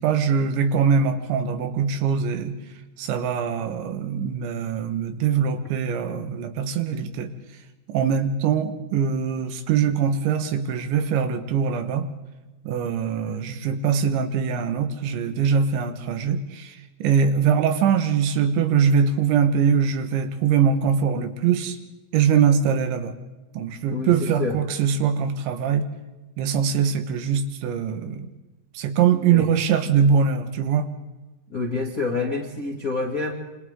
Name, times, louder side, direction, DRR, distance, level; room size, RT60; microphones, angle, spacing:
voice 1, 0.0-2.6 3.0-7.3 7.9-12.1 12.7-21.8 22.1-23.2 23.6-25.9 26.4-28.3 28.8-30.9, right 7 dB, 75° right, 8 dB, 3.6 m, -22 dB
voice 2, 23.9-24.6 29.2-29.5 31.5-33.3, left 3 dB, 30° left, 0 dB, 1.6 m, -27 dB
27.0 x 27.0 x 3.7 m, 1.1 s
omnidirectional pair, 5.5 m